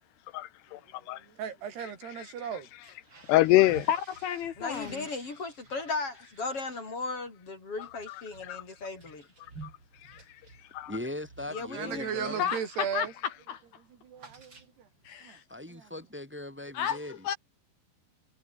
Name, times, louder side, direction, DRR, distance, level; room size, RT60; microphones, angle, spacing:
voice 1, 0.3-0.8 1.1-1.2 1.8-1.9 3.3-3.9 7.8-8.6 10.7-10.9, left 17 dB, 85° left, 2.8 m, -25 dB
voice 2, 1.3-2.7 11.7-13.1 14.0-14.9 15.2-15.4 15.7-15.9, right 8 dB, 70° right, 5.1 m, -36 dB
sound 1, 2.7-12.6 13.0-13.3 13.5-15.1, right 3 dB, 25° right, 4.7 m, -52 dB
voice 3, 3.9-5.1 12.4-13.1 13.5-13.6 15.0-15.4 16.7-17.4, left 9 dB, 65° left, 3.3 m, -32 dB
voice 4, 4.6-9.2 11.5-12.4, left 3 dB, 30° left, 6.1 m, -37 dB
voice 5, 10.9-12.5 15.5-17.1, left 1 dB, 5° right, 3.5 m, -39 dB
omnidirectional pair, 4.9 m